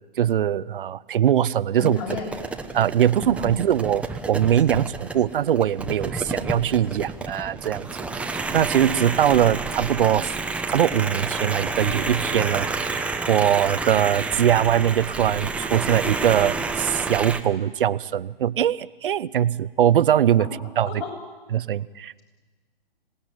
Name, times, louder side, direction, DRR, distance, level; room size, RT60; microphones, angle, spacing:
voice 1, 0.0-2.0 2.7-7.9 8.2-10.3 10.7-20.5 20.8-21.0 21.5-22.1, right 10 dB, 65° right, 18 dB, 0.8 m, -22 dB
voice 2, 1.8-2.3 3.2-3.7 20.4-20.5 20.8-21.1, left 5 dB, 35° left, 2 dB, 7.9 m, -33 dB
sound 1, 1.8-17.4, right 3 dB, 5° right, 1.0 m, -30 dB
26.5 x 19.0 x 9.8 m, 1.3 s
hypercardioid pair, 135°, 29 cm